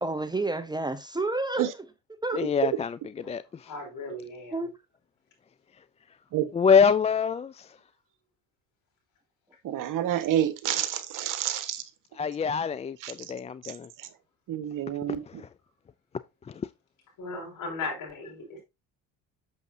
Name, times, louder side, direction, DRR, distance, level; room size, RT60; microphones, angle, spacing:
voice 1, 0.0-1.8 2.1-2.4 4.5-4.7, right 2 dB, 10° right, 0.9 m, -30 dB
voice 2, 2.4-3.7 6.5-7.7 12.2-13.9 15.3-15.5 16.5-16.6, left 6 dB, 20° left, 0.3 m, -25 dB
voice 3, 3.7-4.6 17.2-18.6, left 3 dB, 60° left, 5.0 m, -37 dB
voice 4, 9.6-11.8 13.0-13.1 14.5-15.2, right 11 dB, 65° right, 1.4 m, -28 dB
8.1 x 6.8 x 2.7 m
supercardioid pair, 95°, 34 cm